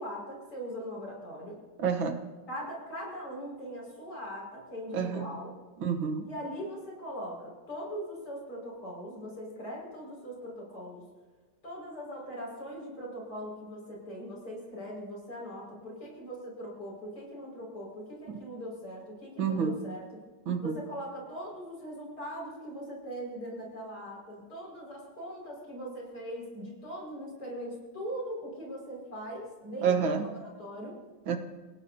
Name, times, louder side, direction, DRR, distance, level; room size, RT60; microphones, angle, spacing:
voice 1, 0.0-1.6 2.5-5.5 6.2-11.0 11.6-20.0 20.6-31.0, equal, 50° left, -2 dB, 6.1 m, -40 dB
voice 2, 1.8-2.2 4.9-5.3 5.8-6.2 19.4-19.7 20.5-20.8 29.8-30.2 31.3-31.4, right 6 dB, 75° right, 6 dB, 1.9 m, -28 dB
27.5 x 16.5 x 2.8 m, 1.4 s
omnidirectional pair, 2.2 m